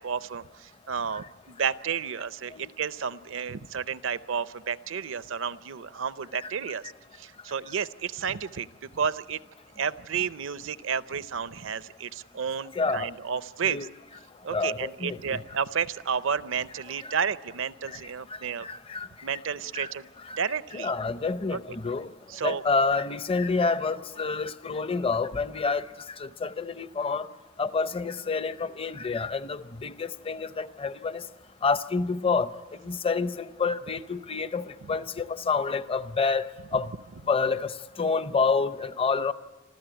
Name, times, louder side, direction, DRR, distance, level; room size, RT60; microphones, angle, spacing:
voice 1, 0.0-8.7 8.9-9.4 9.8-13.9 14.4-18.7 19.2-20.1 20.4-20.9 21.5-21.6 22.3-22.6 34.8-35.0 36.7-36.8, right 6 dB, 70° right, 0.6 m, -31 dB
voice 2, 12.7-13.1 13.6-13.9 14.5-15.4 17.0-17.1 17.9-18.0 18.3-19.1 19.7-19.9 20.3-20.4 20.7-22.1 22.4-25.9 26.2-27.3 27.6-31.2 31.6-32.5 32.8-36.9 37.3-39.3, left 4 dB, 25° left, 0.6 m, -28 dB
26.0 x 15.0 x 9.0 m
head